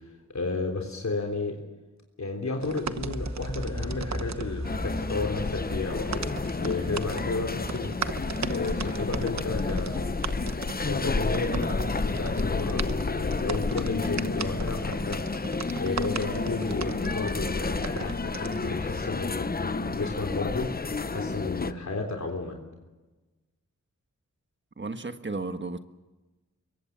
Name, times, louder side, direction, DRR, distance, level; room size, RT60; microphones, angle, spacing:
voice 1, 0.3-1.6 2.2-6.2 6.6-8.0 8.4-10.1 10.8-15.2 15.8-20.7 21.1-22.6, left 3 dB, 65° left, 3.5 m, -32 dB
sound 1, 2.6-18.7, right 6 dB, 65° right, 1.1 m, -39 dB
sound 2, 2.9-14.7, left 1 dB, 10° left, 1.4 m, -40 dB
sound 3, 4.6-21.7, left 3 dB, 30° left, 0.9 m, -30 dB
voice 2, 24.8-25.8, right 3 dB, 40° right, 1.5 m, -33 dB
26.0 x 23.0 x 7.4 m
wide cardioid pair, 80°, 29 cm